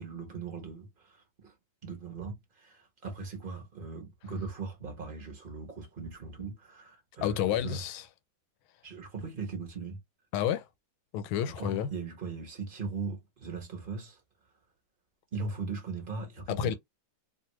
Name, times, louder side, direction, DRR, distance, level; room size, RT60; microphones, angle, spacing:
voice 1, 0.0-1.5 1.8-7.8 8.8-10.0 11.5-14.2 15.3-16.7, right 4 dB, 40° right, 0.8 m, -39 dB
voice 2, 7.2-8.0 10.3-10.7 11.1-11.9 16.5-16.7, left 10 dB, 85° left, 1.4 m, -30 dB
3.0 x 2.5 x 2.9 m
omnidirectional pair, 2.2 m